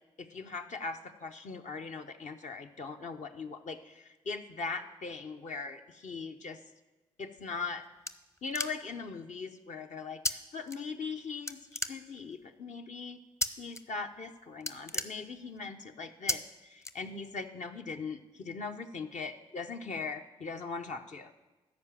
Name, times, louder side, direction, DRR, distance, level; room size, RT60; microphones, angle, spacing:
voice 1, 0.2-6.6 7.2-7.8 8.4-11.6 11.9-13.2 13.6-21.4, left 4 dB, 55° left, 5 dB, 0.8 m, -40 dB
sound 1, 7.4-9.1 10.2-10.3 10.7-11.2 11.5-12.4 13.4-13.8 14.1-14.3 14.5-15.7 16.3-16.4 16.8-17.5, left 1 dB, 20° left, 0.7 m, -35 dB
13.0 x 5.2 x 7.3 m, 1.2 s
supercardioid pair, 45°, 14 cm